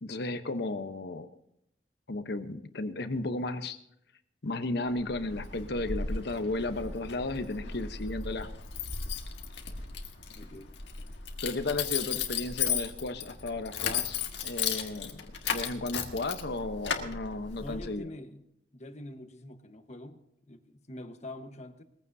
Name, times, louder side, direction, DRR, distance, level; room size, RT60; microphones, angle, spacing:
voice 1, 0.0-1.3 2.1-3.8 4.4-8.5 11.4-18.1, left 2 dB, 65° left, 0.9 m, -34 dB
Keys jangling, 4.9-17.9, left 7 dB, 85° left, 1.5 m, -35 dB
voice 2, 10.3-10.7 12.1-12.3 17.6-18.5 18.7-21.8, left 1 dB, 40° left, 1.2 m, -45 dB
20.5 x 15.0 x 2.7 m
head